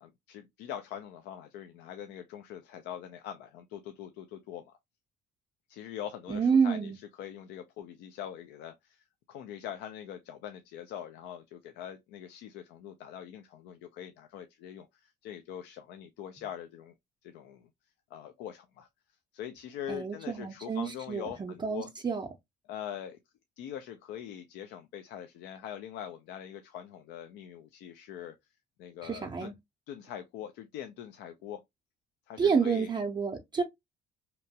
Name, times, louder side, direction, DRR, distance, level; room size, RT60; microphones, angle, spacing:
voice 1, 0.0-4.7 5.7-16.9 17.2-17.7 18.1-18.9 19.3-21.9 22.7-23.2 23.6-28.4 28.8-29.6 29.9-31.6 32.3-32.9, left 10 dB, 85° left, 0.4 m, -43 dB
voice 2, 6.3-7.0 19.9-22.3 29.0-29.5 32.4-33.6, right 6 dB, 25° right, 0.5 m, -29 dB
2.9 x 2.2 x 2.6 m
cardioid pair, 110°, 17 cm